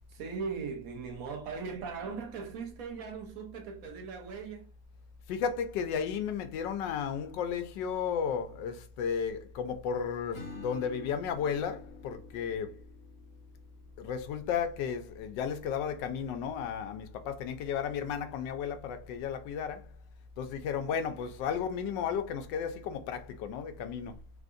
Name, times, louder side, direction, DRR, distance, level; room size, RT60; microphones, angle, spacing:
voice 1, 0.1-4.7, right 5 dB, 65° right, 1.0 m, -39 dB
voice 2, 5.3-12.8 14.0-19.9 20.4-24.2, left 7 dB, 80° left, 1.2 m, -34 dB
Acoustic guitar / Strum, 10.3-15.8, left 4 dB, 55° left, 1.0 m, -50 dB
3.6 x 2.5 x 2.4 m
omnidirectional pair, 2.0 m